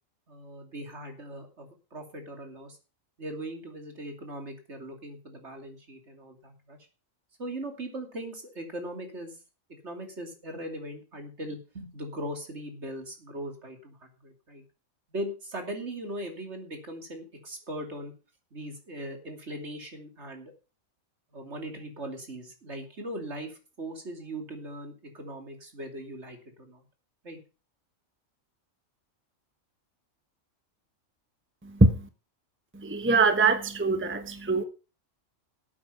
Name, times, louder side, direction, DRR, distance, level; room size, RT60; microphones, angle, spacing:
voice 1, 0.3-2.8 3.2-6.8 7.4-9.4 9.8-14.6 15.1-18.1 18.5-20.5 21.3-26.8 27.2-27.4, right 1 dB, 60° right, 4 dB, 3.1 m, -39 dB
voice 2, 31.6-32.1 32.7-34.6, right 3 dB, 10° right, 9 dB, 1.0 m, -23 dB
12.5 x 8.5 x 5.7 m, 0.33 s
omnidirectional pair, 1.3 m